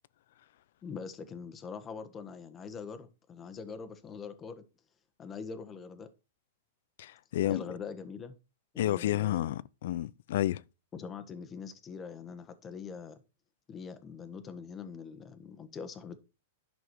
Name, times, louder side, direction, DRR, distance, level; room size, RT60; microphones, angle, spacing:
voice 1, 0.8-4.6 5.2-6.1 7.5-8.3 8.7-9.4 10.9-13.2 13.7-16.2, left 5 dB, 20° left, 1.4 m, -43 dB
voice 2, 7.0-7.6 8.8-10.6, left 13 dB, 65° left, 0.6 m, -30 dB
11.5 x 6.1 x 4.7 m
hypercardioid pair, 145°, 0 cm